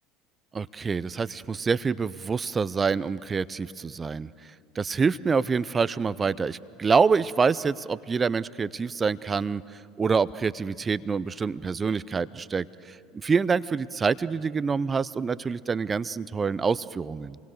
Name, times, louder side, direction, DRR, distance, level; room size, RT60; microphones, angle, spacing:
voice 1, 0.5-4.3 4.8-9.6 10.0-17.4, right 5 dB, 25° right, 18 dB, 0.6 m, -26 dB
27.0 x 21.0 x 6.5 m, 2.5 s
hypercardioid pair, 70°, 0 cm